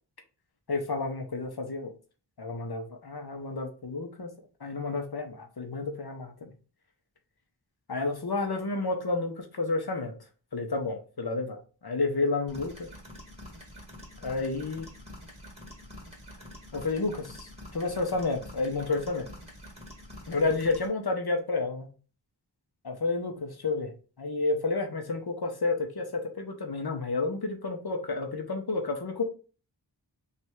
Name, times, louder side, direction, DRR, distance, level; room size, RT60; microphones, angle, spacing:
voice 1, 0.7-1.9 2.4-4.3 4.6-6.5 7.9-10.1 10.5-12.7 14.2-14.9 16.7-19.3 20.3-21.9 22.8-23.9 24.2-29.2, left 3 dB, 55° left, 4 dB, 0.9 m, -30 dB
sound 1, 12.5-20.9, left 1 dB, 15° right, 1.8 m, -47 dB
3.3 x 2.6 x 4.6 m, 0.36 s
wide cardioid pair, 45°, 45 cm